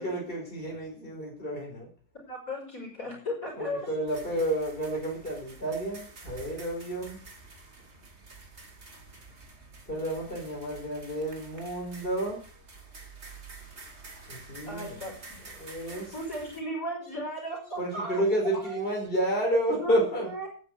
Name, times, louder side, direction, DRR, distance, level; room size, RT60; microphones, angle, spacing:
voice 1, 0.0-1.9 3.6-7.2 9.9-12.4 14.3-15.0 15.6-16.1 17.8-20.3, right 1 dB, 35° left, -2 dB, 5.2 m, -30 dB
voice 2, 2.2-3.9 14.7-15.4 16.1-18.9 19.8-20.5, equal, 60° left, 0 dB, 6.6 m, -36 dB
sound 1, 4.1-16.6, right 3 dB, 45° right, 2.8 m, -49 dB
12.0 x 9.5 x 8.1 m, 0.42 s
omnidirectional pair, 1.6 m